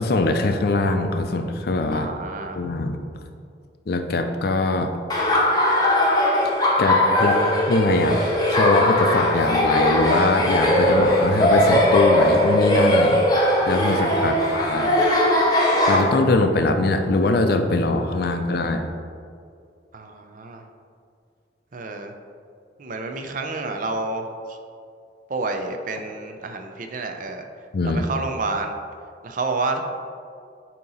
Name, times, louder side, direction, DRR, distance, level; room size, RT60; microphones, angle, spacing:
voice 1, 0.0-2.1 2.5-3.0 3.9-4.9 6.4-7.4 7.7-8.2 8.5-13.2 13.7-14.9 15.9-18.9 27.7-28.0, left 2 dB, 60° left, 6 dB, 0.5 m, -22 dB
voice 2, 1.9-2.6 14.2-14.5 19.9-20.6 21.7-22.1 22.8-24.6 25.3-27.5 27.8-28.8 29.2-29.8, right 3 dB, 45° right, 5 dB, 0.5 m, -29 dB
Laughter, 5.1-16.0, left 1 dB, 20° left, 0.8 m, -19 dB
8.6 x 2.9 x 4.0 m, 2.3 s
head